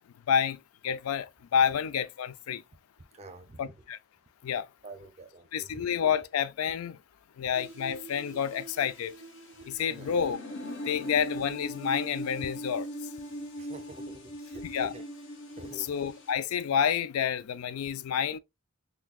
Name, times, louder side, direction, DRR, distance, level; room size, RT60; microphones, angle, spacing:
voice 1, 0.3-2.6 3.6-4.0 4.4-4.7 5.5-7.0 7.4-9.2 9.7-10.4 10.9-12.8 14.6-14.9 15.8-18.4, left 8 dB, 90° left, 0.4 m, -29 dB
voice 2, 3.1-3.6 4.8-5.8 9.9-10.2 13.6-15.0 15.5-15.9, right 1 dB, 30° right, 0.5 m, -47 dB
sound 1, 7.5-16.3, equal, 60° left, 1.4 m, -40 dB
5.9 x 2.2 x 2.2 m
head